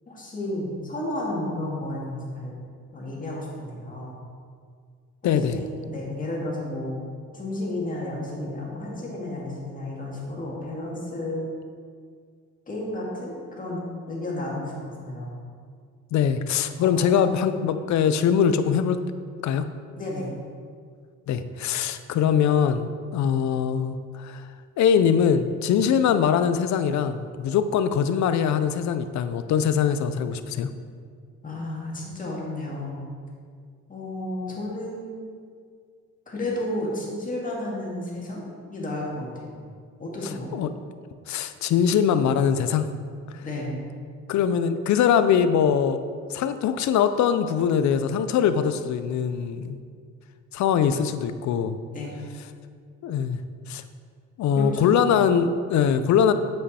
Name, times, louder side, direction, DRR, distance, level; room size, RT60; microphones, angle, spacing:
voice 1, 0.1-2.5 2.9-4.2 5.2-7.0 7.3-11.5 12.7-15.4 16.8-17.6 20.0-20.3 31.4-33.0 33.9-35.2 36.3-38.4 38.7-39.6 40.0-40.5 43.4-43.8 51.9-52.2 54.5-54.9, left 1 dB, 25° left, -4 dB, 1.9 m, -32 dB
voice 2, 5.2-5.6 16.1-19.0 19.4-19.7 21.3-24.4 24.8-30.7 40.5-40.7 41.3-42.9 44.3-46.0 46.3-49.8 50.5-51.8 53.0-53.4 53.7-53.8 54.4-56.3, left 7 dB, 65° left, 11 dB, 0.5 m, -22 dB
7.9 x 5.3 x 4.2 m, 2.1 s
cardioid pair, 125°, 31 cm